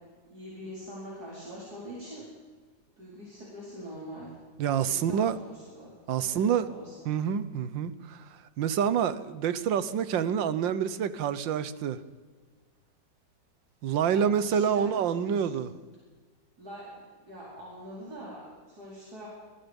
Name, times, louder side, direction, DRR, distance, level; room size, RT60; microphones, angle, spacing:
voice 1, 0.3-2.3 3.0-4.3 4.8-7.1 14.1-15.7 16.6-19.3, equal, 55° right, -6 dB, 5.1 m, -44 dB
voice 2, 4.6-5.4 6.1-6.7 7.1-8.3 8.6-12.0 13.8-15.7, right 8 dB, 80° right, 14 dB, 1.7 m, -27 dB
27.0 x 20.0 x 5.3 m, 1.4 s
omnidirectional pair, 2.0 m